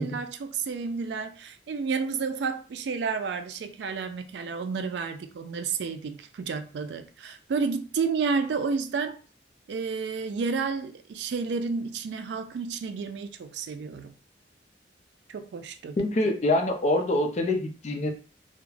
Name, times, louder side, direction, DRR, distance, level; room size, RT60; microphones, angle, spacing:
voice 1, 0.0-9.2 9.7-14.1 15.3-16.0, right 5 dB, 80° right, 0.3 m, -31 dB
voice 2, 16.0-18.1, left 1 dB, 40° left, 0.4 m, -25 dB
2.3 x 2.1 x 3.1 m
head